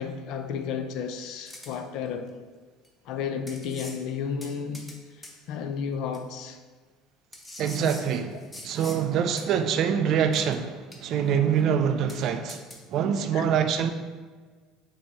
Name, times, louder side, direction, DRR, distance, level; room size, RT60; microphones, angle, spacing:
voice 1, 0.0-2.3 3.0-6.6 8.3-8.4 13.3-13.5, left 6 dB, 55° left, 0.4 m, -33 dB
sound 1, 1.4-1.8 2.8-2.9 3.5-4.0 4.4-5.0 5.2-5.3 6.1-6.2 7.3-9.0 9.4-9.5 10.3-10.6 10.9-11.3 11.6-11.7 12.1-12.2 12.5-12.8, left 1 dB, 10° left, 0.5 m, -44 dB
voice 2, 7.6-12.6 12.9-13.9, right 8 dB, 45° right, 0.3 m, -25 dB
5.2 x 2.7 x 3.4 m
cardioid pair, 150°, 0 cm